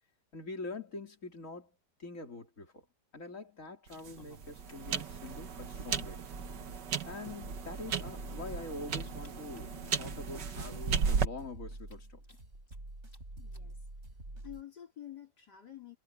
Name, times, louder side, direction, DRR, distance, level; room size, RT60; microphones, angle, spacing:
voice 1, 0.3-1.7 2.0-2.8 3.1-6.2 7.0-12.2, left 3 dB, 45° left, 3.9 m, -44 dB
sound 1, 3.9-5.3 5.6-5.7 5.9-6.0 7.0-7.1 8.0-10.3 10.8-10.9 11.3-11.4 11.8-12.8 13.1-13.2 13.5-13.7 14.4-14.5, left 3 dB, 30° left, 3.1 m, -56 dB
sound 2, 3.9-11.2, right 6 dB, 85° right, 2.1 m, -35 dB
sound 3, 6.3-14.6, right 1 dB, 40° right, 6.8 m, -47 dB
voice 2, 13.4-13.8 14.3-16.0, left 11 dB, 70° left, 4.1 m, -49 dB
omnidirectional pair, 1.8 m